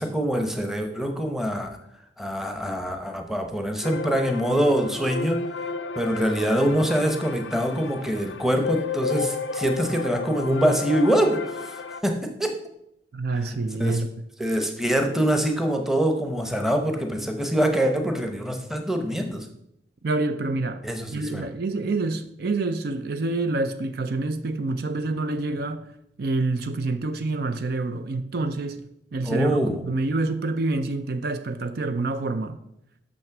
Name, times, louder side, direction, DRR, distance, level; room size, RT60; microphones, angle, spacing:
voice 1, 0.0-1.8 2.2-5.4 6.0-12.6 13.5-14.0 14.4-19.5 20.8-21.5 29.2-29.8, right 1 dB, ahead, 0.9 m, -24 dB
sound 1, 3.8-12.0, left 4 dB, 75° left, 0.5 m, -32 dB
voice 2, 13.1-14.1 20.0-20.8 21.1-25.9 26.2-28.8 29.1-32.6, right 2 dB, 60° right, 0.5 m, -27 dB
6.5 x 6.2 x 5.9 m
head